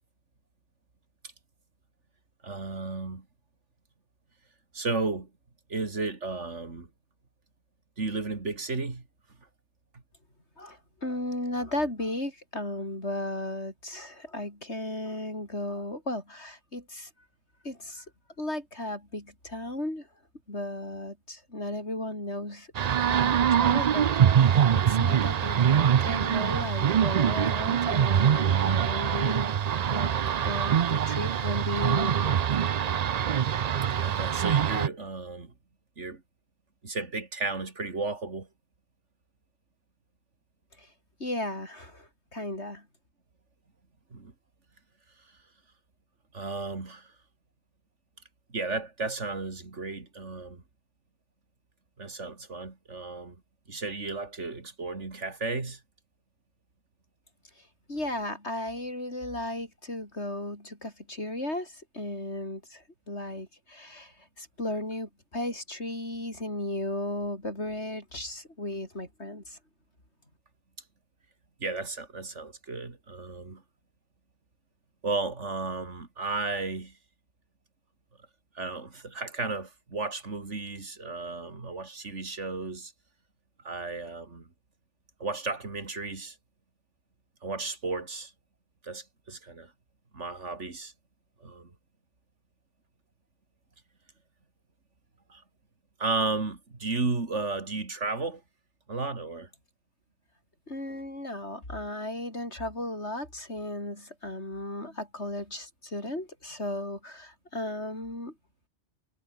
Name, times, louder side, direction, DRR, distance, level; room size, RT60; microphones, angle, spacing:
voice 1, 2.4-3.3 4.7-5.3 5.7-6.9 8.0-9.1 9.9-10.0 34.0-35.5 36.0-36.2 36.8-38.5 44.1-44.3 45.2-45.4 46.3-47.1 48.5-50.6 52.0-53.4 53.7-55.8 71.6-73.6 75.0-77.0 78.5-82.9 83.6-84.5 85.2-86.4 87.4-88.3 88.8-89.7 90.1-90.9 91.4-91.7 95.3-95.4 96.0-98.4 98.9-99.5, right 3 dB, 90° right, 3.3 m, -34 dB
voice 2, 10.6-17.1 17.6-18.0 18.4-20.1 20.5-22.7 23.1-29.5 29.9-30.2 30.4-32.3 40.8-40.9 41.2-42.9 57.9-69.6 100.7-108.3, left 1 dB, 70° left, 8.3 m, -35 dB
sound 1, 22.7-34.9, right 8 dB, 50° right, 0.5 m, -24 dB
omnidirectional pair, 1.2 m